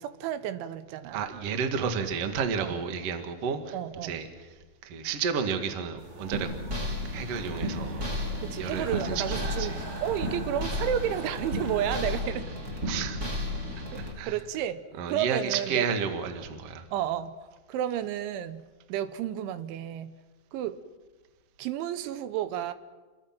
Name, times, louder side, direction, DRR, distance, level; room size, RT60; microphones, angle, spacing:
voice 1, 0.0-1.2 2.6-2.8 3.7-4.2 8.4-12.6 13.9-14.8 15.1-15.9 16.9-17.4 17.7-20.1 20.5-20.8 21.6-22.7, right 10 dB, 85° right, 12 dB, 3.4 m, -32 dB
voice 2, 1.1-3.7 4.0-4.3 4.8-6.5 7.1-8.1 8.6-9.8 12.8-13.2 14.2-14.3 15.0-16.8, right 6 dB, 50° right, 6 dB, 1.9 m, -31 dB
sound 1, 6.0-12.2, right 2 dB, 65° right, 7.5 m, -43 dB
sound 2, 6.3-14.1, left 1 dB, 25° right, 2.6 m, -33 dB
28.5 x 22.0 x 6.0 m, 1.3 s
omnidirectional pair, 5.3 m